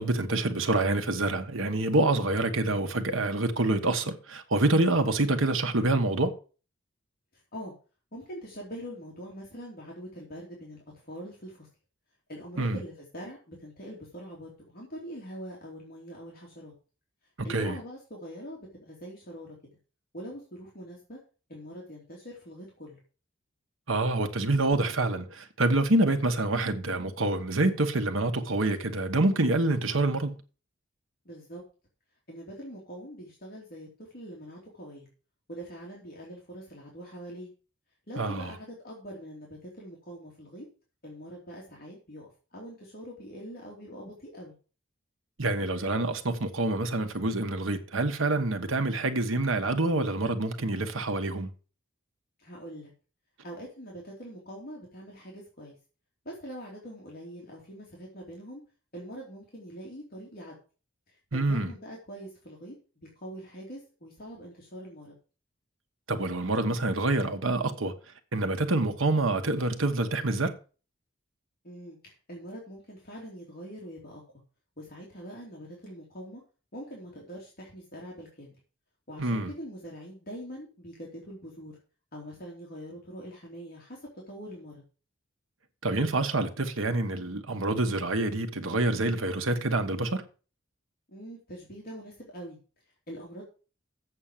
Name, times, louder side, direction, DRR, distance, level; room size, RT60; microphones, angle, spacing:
voice 1, 0.0-6.3 12.6-12.8 17.4-17.8 23.9-30.3 38.2-38.5 45.4-51.5 61.3-61.7 66.1-67.9 68.3-70.5 79.2-79.5 85.8-90.2, right 2 dB, 80° right, 1.4 m, -27 dB
voice 2, 8.1-11.7 12.3-16.7 17.4-19.5 20.1-21.2 21.5-23.0 31.2-31.6 32.3-35.1 35.5-37.5 38.1-40.6 41.0-42.3 42.5-44.5 52.4-52.9 53.4-55.8 56.2-58.6 58.9-60.6 61.1-62.7 63.0-65.1 71.6-74.2 74.8-76.4 76.7-78.6 79.1-81.7 82.1-84.7 91.1-92.6 93.1-93.4, equal, 45° left, 3.0 m, -43 dB
8.1 x 6.5 x 7.4 m
head